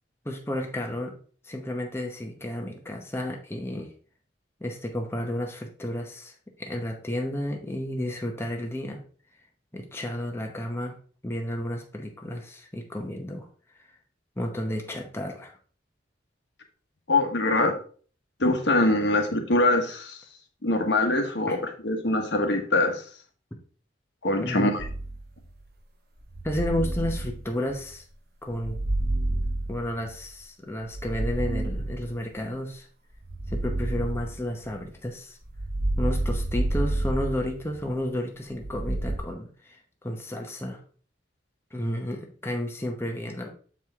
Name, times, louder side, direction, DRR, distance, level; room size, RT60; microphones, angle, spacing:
voice 1, 0.2-1.2 1.4-3.9 4.6-9.0 9.7-13.5 13.7-14.0 14.4-15.6 21.5-21.6 24.4-24.7 26.4-28.1 28.4-28.8 29.7-32.9 33.5-35.4 36.0-40.8 41.7-43.5, left 1 dB, 15° left, 2 dB, 0.8 m, -32 dB
voice 2, 17.1-17.8 18.4-20.2 20.6-21.6 21.8-23.0 24.2-24.8, left 2 dB, 70° left, 4 dB, 1.2 m, -23 dB
sound 1, 24.8-25.5 26.3-27.9 28.5-30.3 30.8-32.4 33.2-34.9 35.5-38.0 38.6-39.2, right 1 dB, 60° right, 1.0 m, -29 dB
7.2 x 4.6 x 3.5 m, 0.42 s
head